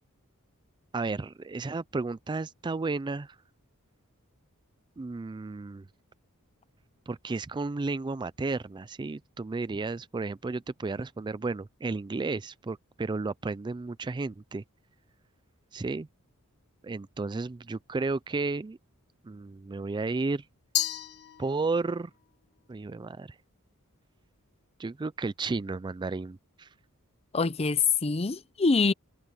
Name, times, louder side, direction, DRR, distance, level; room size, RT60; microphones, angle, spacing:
voice 1, 0.9-3.4 5.0-5.9 7.1-14.6 15.7-16.1 16.8-18.8 19.2-20.4 21.4-22.1 22.7-23.4 24.8-26.7, right 3 dB, 20° right, 0.3 m, -33 dB
Glass, 20.7-22.0, left 13 dB, 50° left, 1.3 m, -32 dB
voice 2, 27.3-28.9, left 4 dB, 30° left, 0.6 m, -25 dB
head